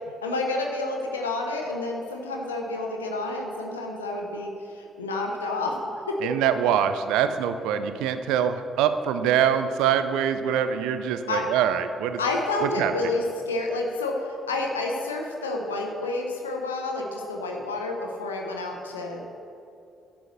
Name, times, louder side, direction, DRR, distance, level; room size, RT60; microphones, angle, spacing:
voice 1, 0.2-5.8 6.1-6.2 9.2-9.3 11.3-11.4 12.2-19.3, left 2 dB, 85° left, 1 dB, 0.8 m, -29 dB
voice 2, 6.2-12.2 12.6-12.9, right 9 dB, 70° right, 10 dB, 0.5 m, -24 dB
11.0 x 5.5 x 6.6 m, 2.6 s
figure-of-eight pair, 40°, 0 cm